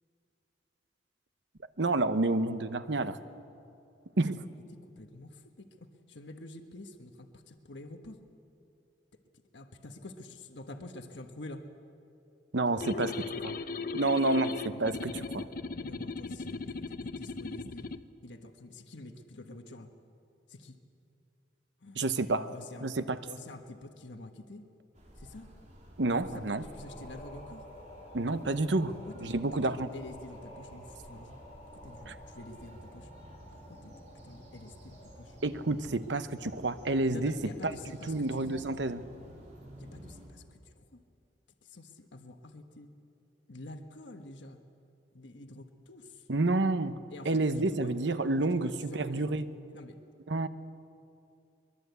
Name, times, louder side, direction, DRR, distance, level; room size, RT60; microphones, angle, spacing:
voice 1, 1.8-3.2 4.2-4.4 12.5-13.1 13.4-13.5 13.9-15.5 21.9-22.5 22.8-23.2 26.0-26.6 28.1-29.9 32.1-32.2 35.4-37.7 38.1-39.0 46.3-47.0 47.2-49.5 50.3-50.5, right 2 dB, 80° right, 11 dB, 1.0 m, -29 dB
voice 2, 5.0-5.7 6.1-8.2 9.5-11.7 12.8-13.2 14.7-15.0 15.8-17.9 18.2-19.9 20.5-20.8 21.8-22.0 22.5-24.6 25.2-25.5 26.3-26.4 26.7-27.6 29.0-29.4 29.6-31.4 31.8-33.1 33.7-33.9 34.2-35.3 37.1-38.6 39.8-41.0 41.6-42.9 43.5-44.6 45.1-46.2 47.1-47.9 48.5-49.2 49.7-50.0, left 2 dB, 85° left, 5 dB, 1.3 m, -47 dB
sound 1, 12.8-18.0, left 4 dB, 55° left, 0.7 m, -38 dB
sound 2, 24.9-40.3, equal, 40° right, 3.9 m, -52 dB
sound 3, 26.4-36.2, equal, 35° left, 7.1 m, -52 dB
22.5 x 22.0 x 8.2 m, 2.6 s
head